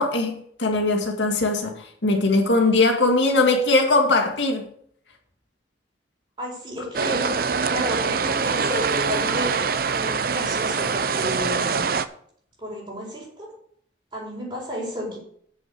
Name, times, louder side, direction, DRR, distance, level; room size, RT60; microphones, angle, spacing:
voice 1, 0.0-4.7, left 2 dB, 80° left, 3 dB, 2.0 m, -20 dB
voice 2, 6.4-7.3 7.7-9.5 9.9-11.8 12.6-13.5 14.1-15.2, equal, 25° right, -4 dB, 4.4 m, -31 dB
sound 1, 6.9-12.0, right 5 dB, 55° right, 0.5 m, -24 dB
7.8 x 6.4 x 8.0 m, 0.63 s
head